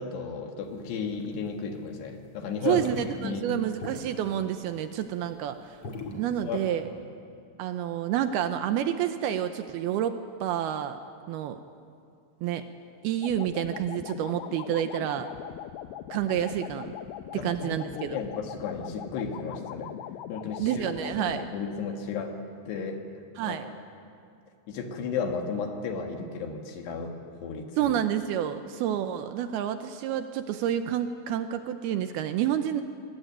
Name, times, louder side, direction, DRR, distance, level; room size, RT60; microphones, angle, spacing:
voice 1, 0.0-2.8 3.2-3.4 6.4-6.8 17.3-19.9 20.3-20.8 21.2-22.3 22.7-23.0 23.4-23.6 24.7-27.9, left 5 dB, 70° left, 4 dB, 3.6 m, -34 dB
sound 1, 0.6-1.8 2.2-6.8, left 3 dB, 45° left, 2.0 m, -39 dB
voice 2, 2.6-5.8 6.1-6.9 7.6-11.0 11.3-11.6 12.4-12.7 13.0-15.3 16.1-16.9 17.3-18.2 20.6-21.5 23.4-23.7 27.8-32.8, right 10 dB, 80° right, 9 dB, 2.2 m, -29 dB
sound 2, 13.2-21.5, left 11 dB, 85° left, 2.1 m, -41 dB
23.0 x 20.5 x 9.3 m, 2.4 s
omnidirectional pair, 5.4 m